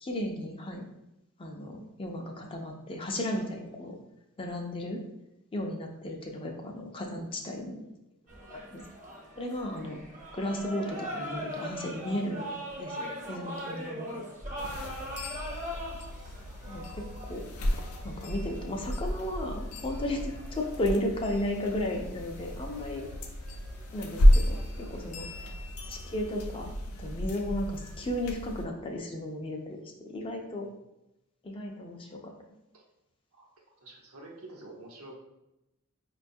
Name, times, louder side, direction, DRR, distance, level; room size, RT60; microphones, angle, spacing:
voice 1, 0.0-0.8 1.4-4.0 4.4-5.0 5.5-7.8 8.4-8.8 9.4-10.0 10.3-12.5 12.8-14.2 16.7-17.5 18.0-23.1 23.9-25.3 25.9-26.7 27.0-30.7 31.4-32.3, left 1 dB, 25° left, 1 dB, 0.4 m, -34 dB
sound 1, 8.3-27.1, equal, 35° right, 0.6 m, -42 dB
sound 2, 14.6-28.7, equal, 80° left, 0.5 m, -31 dB
voice 2, 33.3-35.1, right 2 dB, 75° right, -1 dB, 0.8 m, -49 dB
4.9 x 2.3 x 2.6 m, 0.91 s
head